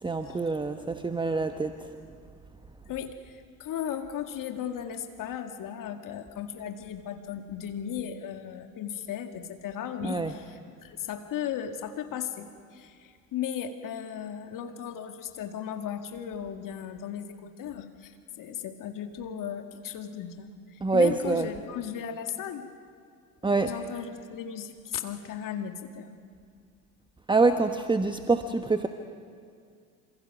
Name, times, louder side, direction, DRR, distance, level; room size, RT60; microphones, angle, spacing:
voice 1, 0.0-1.7 10.0-10.3 20.8-21.5 23.4-23.7 27.3-28.9, right 3 dB, 10° right, 7 dB, 1.1 m, -25 dB
voice 2, 2.9-22.7 23.6-26.1, left 9 dB, 45° left, 6 dB, 2.0 m, -36 dB
28.0 x 27.0 x 6.0 m, 2.2 s
hypercardioid pair, 70°, 45 cm